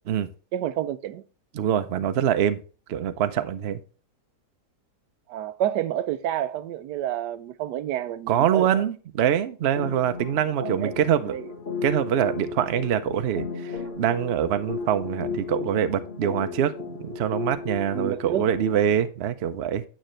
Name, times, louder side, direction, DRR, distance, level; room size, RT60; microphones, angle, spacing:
voice 1, 0.5-1.2 5.3-8.7 10.6-10.9 11.3-11.4 17.9-18.5, right 11 dB, 80° right, 1.2 m, -29 dB
voice 2, 1.5-2.6 2.9-3.8 8.3-11.3 11.8-19.8, right 9 dB, 60° right, 0.6 m, -24 dB
sound 1, 9.8-19.0, left 5 dB, 40° left, 1.5 m, -35 dB
8.9 x 7.6 x 3.2 m
omnidirectional pair, 1.8 m